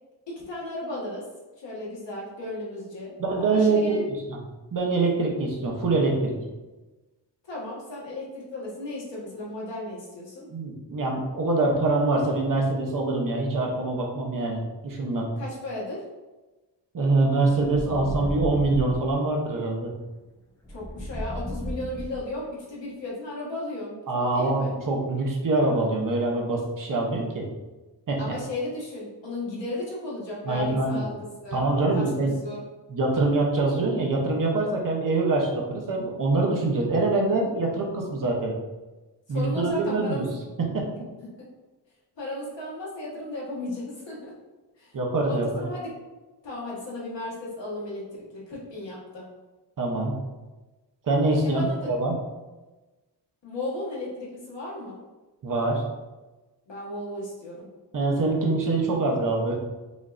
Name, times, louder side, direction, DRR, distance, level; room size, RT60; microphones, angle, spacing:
voice 1, 0.3-1.2 1.6-3.1 3.4-4.0 7.5-10.5 15.4-16.0 20.7-24.7 28.2-31.6 31.9-32.6 39.3-40.3 41.2-41.3 42.2-44.3 44.8-45.0 45.3-45.9 46.4-49.3 51.4-51.9 53.4-55.0 56.7-57.7, left 2 dB, 85° left, -6 dB, 1.4 m, -35 dB
voice 2, 3.2-4.4 4.7-6.3 10.5-15.3 16.9-19.9 24.1-27.5 28.1-28.2 30.5-31.1 31.5-32.3 32.9-38.5 39.3-40.3 40.6-40.9 44.9-45.6 49.8-50.1 51.1-52.1 55.4-55.8 57.9-59.6, right 2 dB, 50° right, -1 dB, 0.8 m, -24 dB
sound 1, 17.5-19.1 20.6-22.5, equal, 5° left, 0.3 m, -34 dB
5.2 x 2.5 x 2.5 m, 1.2 s
wide cardioid pair, 155°, 42 cm